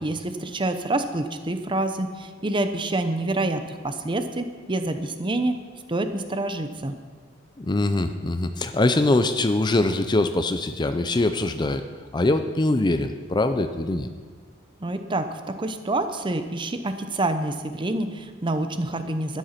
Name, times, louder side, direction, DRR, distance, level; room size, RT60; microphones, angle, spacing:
voice 1, 0.0-5.6 5.9-7.0 14.8-19.4, right 2 dB, 25° right, 8 dB, 0.7 m, -27 dB
voice 2, 7.6-11.8 12.1-14.1, left 2 dB, 25° left, 9 dB, 0.5 m, -23 dB
12.0 x 9.6 x 5.8 m, 1.5 s
head